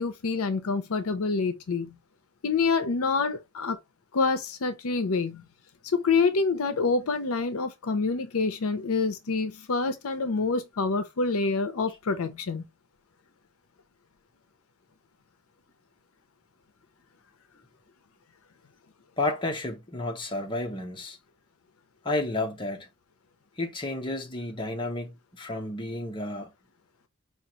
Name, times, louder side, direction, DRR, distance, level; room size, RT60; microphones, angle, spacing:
voice 1, 0.0-2.0 2.4-3.8 4.1-5.4 5.8-12.7, left 4 dB, 75° left, 0.6 m, -27 dB
voice 2, 19.2-21.2 22.0-22.9 23.6-26.5, left 2 dB, 25° left, 1.0 m, -31 dB
4.9 x 2.5 x 2.8 m
head